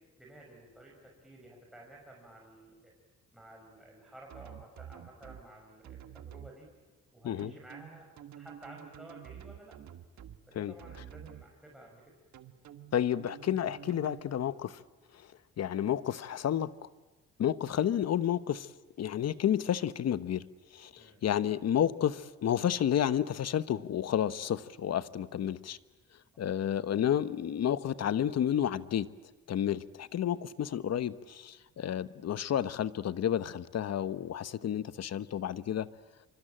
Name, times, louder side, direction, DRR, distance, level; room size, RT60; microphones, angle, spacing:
voice 1, 0.2-2.9 3.3-6.7 7.1-9.8 10.5-12.2 21.0-21.2 26.3-26.4, right 1 dB, ahead, -2 dB, 6.0 m, -53 dB
sound 1, 4.3-5.4 5.8-6.5 7.4-10.4 10.8-11.4 12.3-14.2, right 10 dB, 65° right, 1.5 m, -49 dB
voice 2, 12.9-14.8 15.6-16.7 17.4-18.7 19.0-20.4 20.7-25.8 26.4-29.1 29.5-35.9, left 10 dB, 55° left, 15 dB, 1.1 m, -31 dB
26.0 x 25.0 x 9.0 m, 1.1 s
cardioid pair, 90°, 30 cm